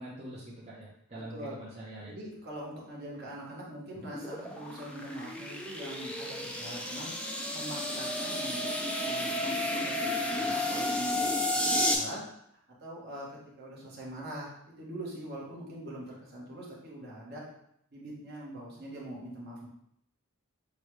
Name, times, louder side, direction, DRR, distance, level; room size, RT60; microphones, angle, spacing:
voice 1, 0.0-2.1, right 1 dB, 30° right, -7 dB, 0.7 m, -44 dB
voice 2, 1.1-1.6 2.1-7.1 7.5-12.2 12.8-17.4 17.9-19.7, right 1 dB, 50° right, -5 dB, 1.3 m, -43 dB
sound 1, 4.0-11.9, left 1 dB, 5° left, 0.4 m, -32 dB
6.6 x 2.3 x 3.1 m, 0.74 s
head